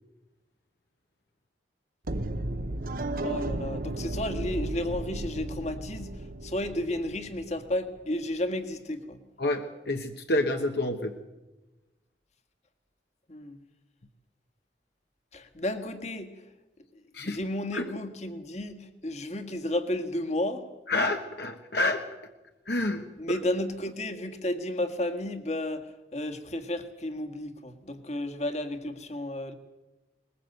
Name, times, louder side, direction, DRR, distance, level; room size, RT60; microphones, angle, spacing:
sound 1, 2.0-8.0, right 2 dB, 50° right, 1.0 m, -34 dB
voice 1, 3.2-9.2 13.3-13.6 15.3-16.4 17.2-20.6 23.2-29.5, left 1 dB, 40° left, 7 dB, 1.7 m, -32 dB
voice 2, 9.4-11.1 17.1-17.4 17.7-17.8 20.9-22.0 22.7-23.0, left 2 dB, 60° left, 4 dB, 1.2 m, -28 dB
20.5 x 20.5 x 8.0 m, 1.1 s
head